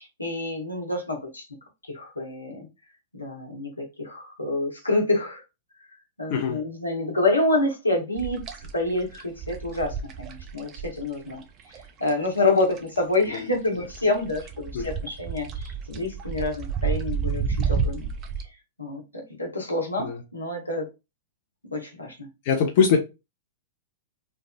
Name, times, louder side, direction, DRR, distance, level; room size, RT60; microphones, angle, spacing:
voice 1, 0.0-1.4 1.9-2.7 3.1-5.4 6.2-8.4 8.7-11.4 12.0-18.1 18.8-20.9 21.7-22.3, left 2 dB, 90° left, 1.0 m, -27 dB
sound 1, 8.2-13.0 13.2-18.4, right 6 dB, 35° right, 0.5 m, -30 dB
voice 2, 22.4-23.0, left 6 dB, 50° left, 0.5 m, -22 dB
3.2 x 2.4 x 2.2 m
figure-of-eight pair, 100°, 0 cm